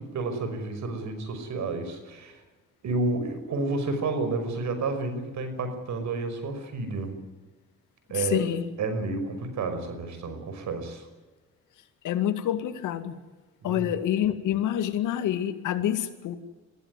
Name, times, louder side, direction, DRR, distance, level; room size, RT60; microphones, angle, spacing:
voice 1, 0.0-2.4 2.8-7.2 8.1-8.5 8.8-11.1 13.6-13.9, right 3 dB, 70° right, 9 dB, 5.7 m, -30 dB
voice 2, 8.1-8.6 12.0-13.1 13.6-16.4, left 11 dB, 85° left, 9 dB, 2.1 m, -27 dB
23.0 x 15.5 x 9.8 m, 1.2 s
cardioid pair, 90°, 30 cm